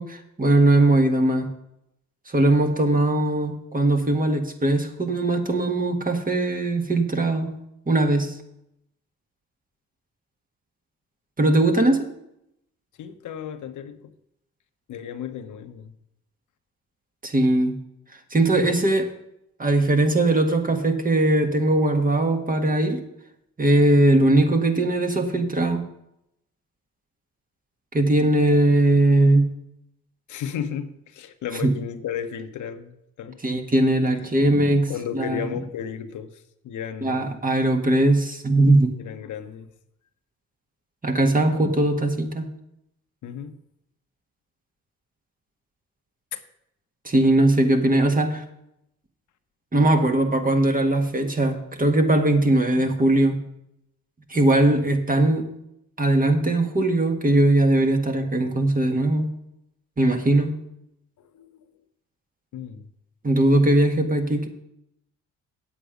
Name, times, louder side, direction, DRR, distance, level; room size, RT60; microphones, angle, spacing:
voice 1, 0.0-1.5 2.3-7.6 7.9-8.3 11.4-12.1 17.2-17.8 18.3-19.1 19.6-23.0 23.6-25.8 27.9-29.5 31.6-31.7 33.4-35.4 37.0-38.9 41.0-42.5 47.1-48.4 49.7-53.4 54.3-55.5 56.0-59.3 60.0-60.6 63.2-64.5, right 2 dB, 25° right, 4 dB, 1.8 m, -20 dB
voice 2, 13.0-14.1 14.9-15.9 30.3-33.4 34.9-36.3 36.6-37.4 39.0-39.7 43.2-43.6 46.3-46.4 61.3-61.5 62.5-62.9, left 8 dB, 75° left, 8 dB, 1.0 m, -34 dB
9.3 x 8.2 x 5.1 m, 0.80 s
supercardioid pair, 65°, 31 cm